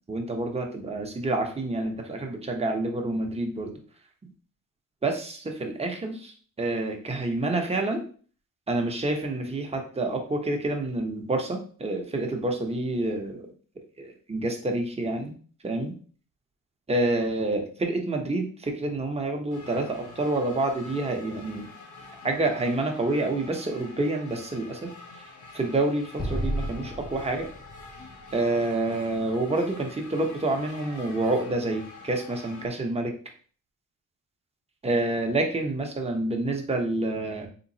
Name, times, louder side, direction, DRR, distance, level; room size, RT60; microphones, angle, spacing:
voice 1, 0.1-3.7 5.0-8.0 8.7-13.5 14.0-15.3 15.6-15.9 16.9-21.7 22.2-24.9 25.5-27.5 28.3-33.1 34.8-37.5, right 2 dB, 20° right, 2 dB, 0.8 m, -28 dB
sound 1, 19.5-32.7, left 3 dB, 55° left, 1.0 m, -46 dB
Explosion, 26.2-29.5, equal, 15° left, 0.4 m, -34 dB
3.7 x 3.0 x 2.7 m, 0.43 s
cardioid pair, 95°, 34 cm